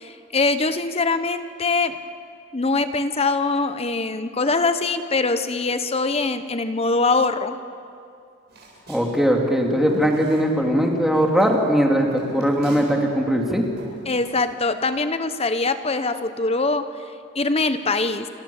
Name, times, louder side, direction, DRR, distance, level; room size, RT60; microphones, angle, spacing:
voice 1, 0.0-1.9 2.5-7.6 14.1-16.9 17.3-18.3, left 3 dB, 30° left, 10 dB, 1.0 m, -23 dB
Walk footsteps, 8.5-10.9 11.1-13.1 13.3-14.9, right 1 dB, 55° right, 7.5 m, -40 dB
voice 2, 8.9-13.6, equal, ahead, 0 dB, 3.0 m, -20 dB
29.5 x 25.5 x 7.3 m, 2.5 s
head